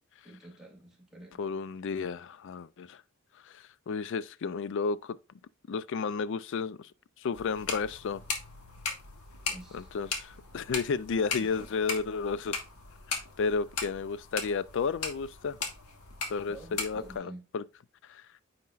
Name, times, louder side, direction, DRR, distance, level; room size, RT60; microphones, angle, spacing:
voice 1, 0.2-1.4 9.5-9.9 11.4-11.7 16.5-17.4, right 1 dB, ahead, 2.3 m, -48 dB
voice 2, 1.4-3.0 3.4-5.2 5.7-6.9 7.2-8.2 9.7-12.6 13.4-15.6 16.3-17.6 18.0-18.3, left 5 dB, 55° left, 0.4 m, -32 dB
sound 1, 7.3-17.2, left 4 dB, 85° left, 1.7 m, -38 dB
9.3 x 4.4 x 2.4 m
head